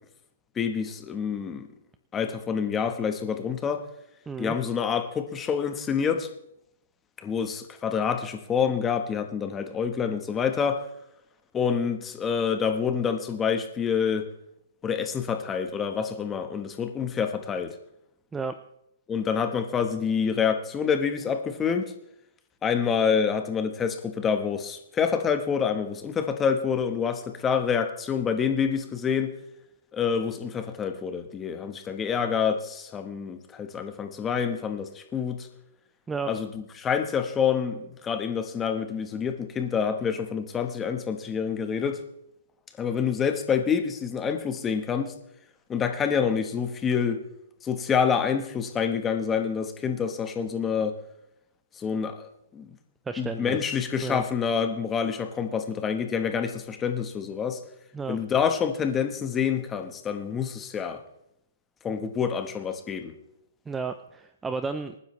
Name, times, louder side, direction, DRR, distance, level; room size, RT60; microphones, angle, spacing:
voice 1, 0.6-1.7 2.1-3.8 4.4-6.3 7.2-10.8 11.5-14.3 14.8-17.8 19.1-21.9 22.6-29.4 29.9-35.5 36.3-42.0 42.8-45.1 45.7-47.2 47.6-50.9 51.8-52.7 53.2-57.6 58.1-61.0 61.8-63.1, left 6 dB, 15° left, 7 dB, 1.2 m, -27 dB
voice 2, 4.3-4.6 18.3-18.6 36.1-36.3 53.1-54.2 57.9-58.2 63.7-65.0, right 4 dB, 10° right, 10 dB, 0.5 m, -33 dB
26.0 x 9.8 x 3.2 m, 0.79 s
hypercardioid pair, 160°, 0 cm